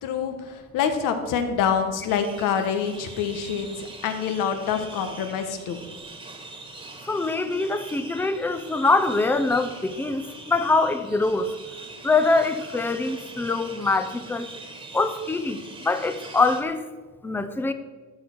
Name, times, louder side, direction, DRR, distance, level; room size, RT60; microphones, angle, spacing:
voice 1, 0.0-5.8, left 7 dB, 85° left, 7 dB, 1.4 m, -26 dB
sound 1, 2.1-16.6, right 3 dB, 15° right, 1.6 m, -42 dB
voice 2, 7.1-11.5 12.0-14.5 14.9-16.8 17.2-17.7, left 3 dB, 5° left, 9 dB, 0.6 m, -24 dB
13.0 x 5.3 x 6.2 m, 1.3 s
cardioid pair, 135°, 32 cm